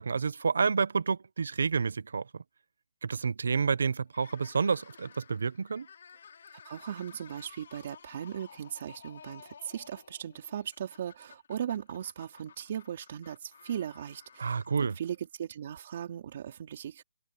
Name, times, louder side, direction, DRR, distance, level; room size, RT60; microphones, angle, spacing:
voice 1, 0.0-2.4 3.0-5.9 14.4-14.9, right 5 dB, 75° right, 0.8 m, -29 dB
sound 1, 4.1-15.4, left 7 dB, 55° left, 5.7 m, -54 dB
voice 2, 6.5-17.0, right 9 dB, 40° right, 3.7 m, -38 dB
hypercardioid pair, 170°, 0 cm